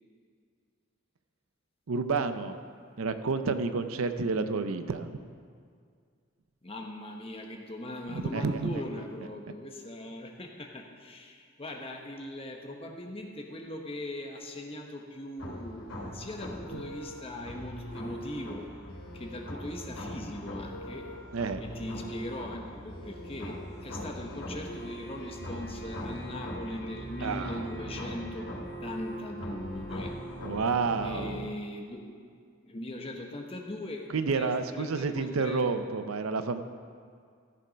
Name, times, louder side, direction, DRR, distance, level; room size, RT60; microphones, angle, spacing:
voice 1, 1.9-2.6 3.0-5.1 8.1-8.7 16.7-16.8 21.3-21.6 27.2-27.9 30.4-31.5 34.1-36.6, right 4 dB, 85° right, 10 dB, 0.6 m, -30 dB
voice 2, 6.6-18.7 19.1-21.1 21.6-28.5 28.8-30.1 31.0-32.0 32.6-35.8, left 1 dB, 25° left, 2 dB, 1.0 m, -40 dB
sound 1, 15.4-31.4, equal, 70° left, 3.2 m, -40 dB
14.0 x 6.8 x 5.1 m, 2.1 s
head